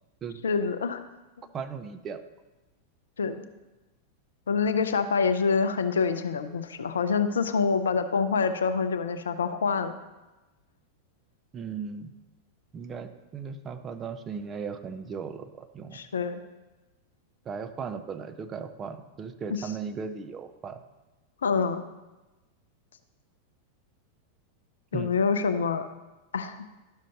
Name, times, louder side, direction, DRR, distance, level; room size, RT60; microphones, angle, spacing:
voice 1, 0.4-1.0 3.2-3.4 4.5-9.9 15.9-16.4 19.5-19.7 21.4-21.8 24.9-25.9 26.3-26.6, left 5 dB, 65° left, 9 dB, 0.5 m, -26 dB
voice 2, 1.5-2.2 11.5-12.1 12.7-16.0 17.5-20.8 24.9-25.1, right 6 dB, 25° right, 9 dB, 0.5 m, -37 dB
12.0 x 6.2 x 2.8 m, 1.1 s
figure-of-eight pair, 90°, 0 cm